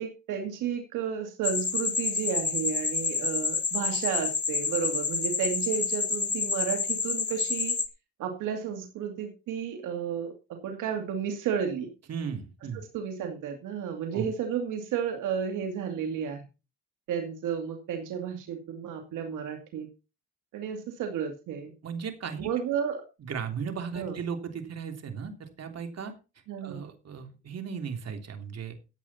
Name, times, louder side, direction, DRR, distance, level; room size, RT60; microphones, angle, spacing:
voice 1, 0.0-7.8 8.2-11.9 12.7-16.4 17.1-19.9 20.5-21.7 22.4-23.0 23.9-24.2 26.5-26.8, right 7 dB, 90° right, 5 dB, 2.5 m, -32 dB
sound 1, 1.4-7.9, left 4 dB, 35° left, 2.0 m, -29 dB
voice 2, 12.1-12.8 14.1-14.3 21.8-22.5 23.2-26.1 26.6-28.7, right 6 dB, 55° right, 5 dB, 3.3 m, -36 dB
15.5 x 8.7 x 4.3 m, 0.30 s
cardioid pair, 90°, 30 cm